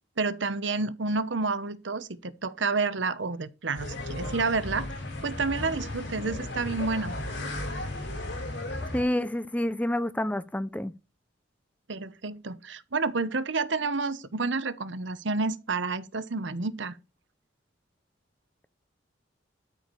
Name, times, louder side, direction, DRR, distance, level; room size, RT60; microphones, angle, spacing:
voice 1, 0.2-4.9 5.2-7.2 11.9-17.0, right 3 dB, 70° right, 1.0 m, -29 dB
sound 1, 3.7-9.0, left 1 dB, 75° left, 5.6 m, -35 dB
voice 2, 8.9-10.9, left 1 dB, 10° left, 0.5 m, -28 dB
13.0 x 5.0 x 6.9 m
head